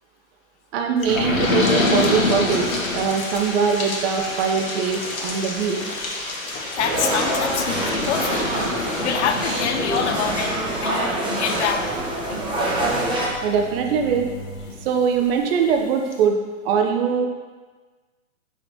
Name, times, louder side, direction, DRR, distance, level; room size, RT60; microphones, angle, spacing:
voice 1, 0.7-5.9 13.4-14.3 14.8-17.3, right 6 dB, 45° right, 3 dB, 0.8 m, -22 dB
sound 1, 1.0-15.3 15.8-15.9 16.1-16.2, left 2 dB, 80° left, 1.3 m, -28 dB
sound 2, 2.9-11.6, left 3 dB, 20° left, 0.6 m, -41 dB
voice 2, 6.8-8.5 9.0-11.9, left 8 dB, 55° left, 6 dB, 0.7 m, -26 dB
sound 3, 6.8-13.3, right 1 dB, 10° right, 1.0 m, -25 dB
6.0 x 5.7 x 2.9 m, 1.3 s
hypercardioid pair, 120°, 41 cm